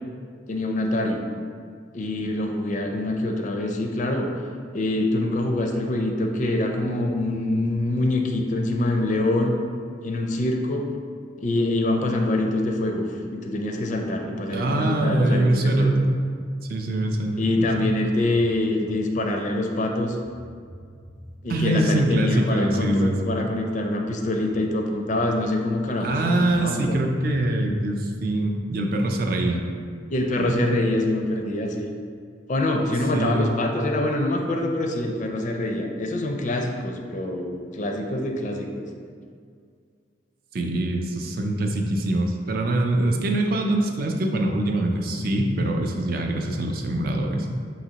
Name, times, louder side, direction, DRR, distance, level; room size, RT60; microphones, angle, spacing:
voice 1, 0.5-1.2 1.9-4.3 4.7-9.5 10.0-10.8 11.4-16.0 17.4-20.2 21.4-27.0 30.1-31.9 32.5-38.9, left 1 dB, 40° left, 2 dB, 0.4 m, -25 dB
voice 2, 14.5-16.0 16.7-17.9 21.5-23.3 26.0-29.6 30.4-30.5 33.1-33.6 40.5-47.5, right 1 dB, 50° right, 2 dB, 0.4 m, -23 dB
sound 1, 18.3-18.9 19.9-20.0 20.2-21.9 24.1-24.2 24.5-25.1 26.4-28.2, right 1 dB, 25° right, 0.8 m, -45 dB
5.9 x 2.9 x 2.8 m, 2.2 s
head